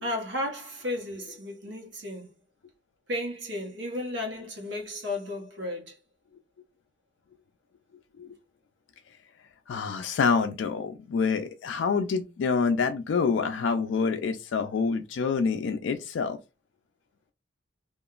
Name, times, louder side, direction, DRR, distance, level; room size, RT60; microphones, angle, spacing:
voice 1, 0.0-2.3 3.1-6.0, left 1 dB, 65° right, 1.0 m, -34 dB
voice 2, 9.7-16.4, left 5 dB, 70° left, 0.3 m, -27 dB
2.8 x 2.4 x 2.4 m
head